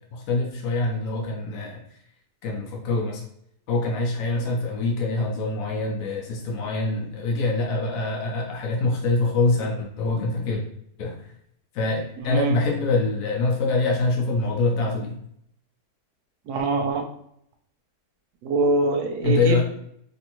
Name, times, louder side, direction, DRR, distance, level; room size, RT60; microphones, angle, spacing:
voice 1, 0.1-1.8 2.4-3.2 3.7-10.6 11.0-11.2 11.7-15.1 19.2-19.6, left 3 dB, 70° left, 0 dB, 1.0 m, -24 dB
voice 2, 12.2-12.6 16.5-17.1 18.4-19.6, right 2 dB, 85° right, 3 dB, 1.1 m, -24 dB
3.3 x 2.5 x 2.9 m, 0.71 s
omnidirectional pair, 1.6 m